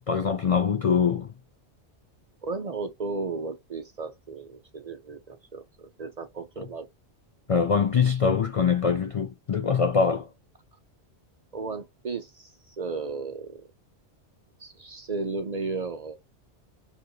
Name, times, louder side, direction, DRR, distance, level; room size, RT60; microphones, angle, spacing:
voice 1, 0.1-1.3 7.5-10.3, left 6 dB, 55° left, 0.3 m, -23 dB
voice 2, 2.4-6.9 11.5-13.6 14.6-16.1, right 4 dB, 50° right, 0.5 m, -34 dB
4.5 x 2.8 x 3.0 m
omnidirectional pair, 1.2 m